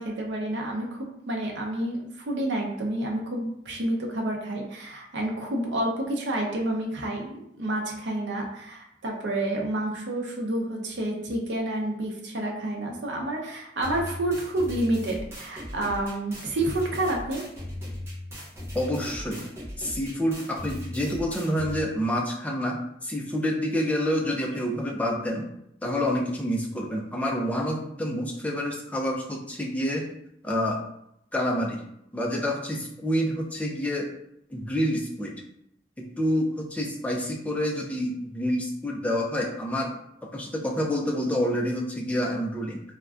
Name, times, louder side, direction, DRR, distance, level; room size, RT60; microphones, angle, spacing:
voice 1, 0.0-17.4, right 1 dB, 80° right, 0 dB, 0.6 m, -29 dB
sound 1, 13.8-21.8, left 1 dB, 15° right, 0.7 m, -38 dB
voice 2, 18.7-19.4 19.8-25.5 25.8-30.1 30.4-30.8 31.3-31.8 32.1-34.1 34.5-35.4 36.0-39.9 40.3-42.8, equal, 10° left, -1 dB, 0.3 m, -28 dB
3.4 x 2.1 x 2.4 m, 0.76 s
head